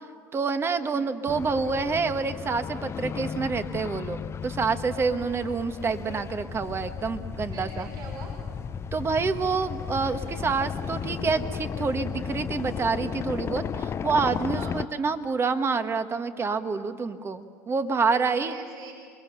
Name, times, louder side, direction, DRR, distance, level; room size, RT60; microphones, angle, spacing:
voice 1, 0.3-7.9 8.9-18.5, right 4 dB, 30° right, 9 dB, 1.4 m, -27 dB
sound 1, 1.3-14.9, left 7 dB, 30° left, 0.7 m, -34 dB
voice 2, 7.5-8.3 14.5-14.8 18.2-18.9, right 4 dB, 50° right, 1 dB, 4.8 m, -42 dB
26.5 x 22.0 x 6.9 m, 2.1 s
hypercardioid pair, 80°, 9 cm